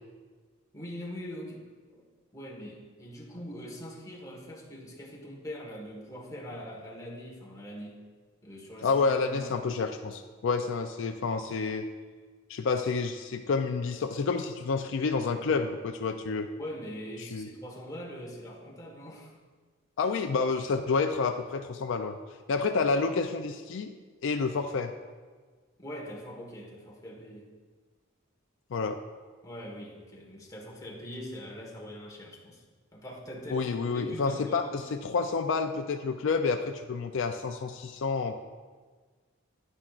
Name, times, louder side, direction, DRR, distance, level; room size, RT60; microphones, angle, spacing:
voice 1, 0.7-1.6 1.9-2.1 2.3-7.9 8.4-9.7 16.6-19.4 22.8-23.2 25.8-27.5 29.4-32.6 32.9-34.8, equal, 15° left, -2 dB, 1.4 m, -42 dB
voice 2, 8.8-11.8 12.5-16.5 17.3-17.5 20.0-22.2 22.5-23.9 24.2-24.9 28.7-29.0 33.5-38.3, left 4 dB, 65° left, 5 dB, 0.4 m, -29 dB
10.0 x 9.8 x 2.5 m, 1.5 s
head